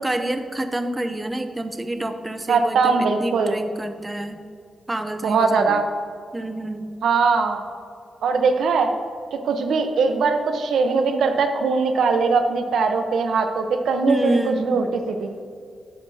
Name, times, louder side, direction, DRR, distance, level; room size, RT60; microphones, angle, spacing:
voice 1, 0.0-4.4 4.9-5.8 6.3-6.9 14.1-14.8, right 1 dB, 15° right, 8 dB, 0.7 m, -27 dB
voice 2, 2.5-3.6 5.2-5.8 7.0-7.6 8.2-9.0 9.3-15.3, right 4 dB, 85° right, 6 dB, 0.9 m, -21 dB
13.0 x 9.3 x 2.8 m, 2.3 s
cardioid pair, 110°, 0 cm